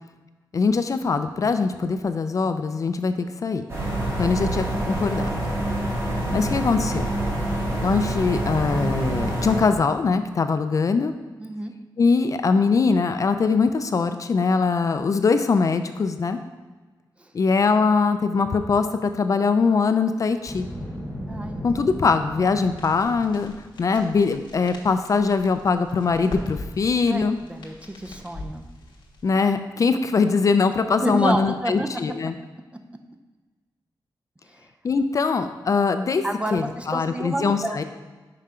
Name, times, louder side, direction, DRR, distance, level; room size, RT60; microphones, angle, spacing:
voice 1, 0.5-3.1 3.4-3.6 4.2-5.3 6.3-7.0 7.8-11.1 12.0-16.4 17.3-20.7 21.6-23.5 23.8-27.4 29.2-32.3 34.8-36.2 36.5-37.8, left 4 dB, 45° left, 9 dB, 0.3 m, -22 dB
sound 1, 3.7-9.6, right 1 dB, 35° right, 1.7 m, -26 dB
voice 2, 11.4-11.7 17.2-17.3 21.3-22.1 27.1-28.6 31.0-31.9 34.5-34.6 36.2-37.8, right 1 dB, 15° right, 5 dB, 0.5 m, -29 dB
Boom, 20.4-23.5, equal, 15° left, 2.1 m, -35 dB
sound 2, 22.8-29.3, left 1 dB, 80° left, 1.3 m, -42 dB
5.7 x 5.5 x 4.9 m, 1.3 s
wide cardioid pair, 170°, 8 cm